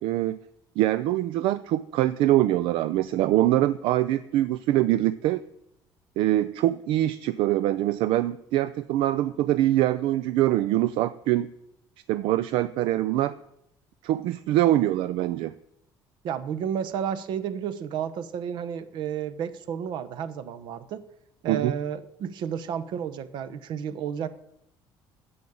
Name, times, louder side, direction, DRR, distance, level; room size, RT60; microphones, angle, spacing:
voice 1, 0.0-0.4 0.8-5.4 6.2-11.5 12.1-13.3 14.0-15.5 21.5-21.7, right 14 dB, 75° right, 14 dB, 0.4 m, -24 dB
voice 2, 16.2-21.0 21.4-24.3, right 8 dB, 60° right, 12 dB, 0.9 m, -31 dB
10.0 x 7.1 x 8.6 m, 0.78 s
cardioid pair, 145°, 9 cm